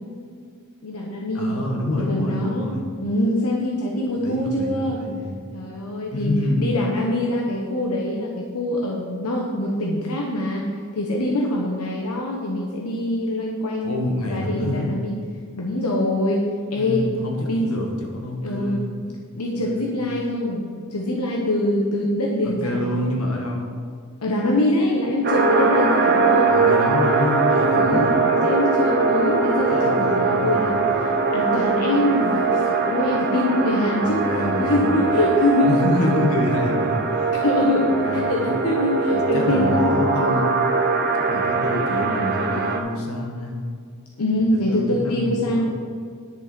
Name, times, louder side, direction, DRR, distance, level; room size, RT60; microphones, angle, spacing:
voice 1, 0.8-1.6 2.0-2.7 3.0-5.0 5.5-14.0 14.3-15.2 15.6-17.1 17.5-17.6 18.4-18.8 19.3-20.6 20.9-23.0 24.2-26.5 27.8-32.4 32.6-34.2 34.6-35.8 37.4-40.0 44.2-45.7, left 1 dB, 90° left, -1 dB, 1.1 m, -24 dB
voice 2, 1.3-2.8 4.2-5.4 6.1-6.8 13.8-14.9 16.8-18.9 19.6-19.9 22.4-23.8 26.5-28.2 29.7-30.8 34.0-35.2 35.6-37.3 37.9-38.6 39.1-40.5 41.3-43.6 44.7-45.7, left 1 dB, 70° left, 0 dB, 1.9 m, -27 dB
sound 1, 25.2-42.8, right 4 dB, 50° right, 1.1 m, -21 dB
10.5 x 6.8 x 5.2 m, 2.1 s
head